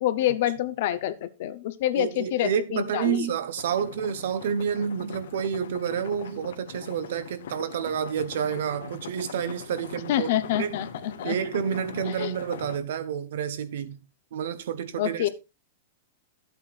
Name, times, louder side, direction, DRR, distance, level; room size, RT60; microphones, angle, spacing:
voice 1, 0.0-3.3 10.1-11.4 12.0-12.3 15.0-15.3, left 12 dB, 45° left, 0.8 m, -27 dB
voice 2, 1.9-10.3 10.6-10.9 11.2-14.0 14.3-15.3, right 8 dB, 65° right, 1.1 m, -29 dB
sound 1, 3.6-12.8, left 7 dB, 85° left, 1.6 m, -41 dB
12.5 x 8.3 x 2.5 m
supercardioid pair, 175°, 0 cm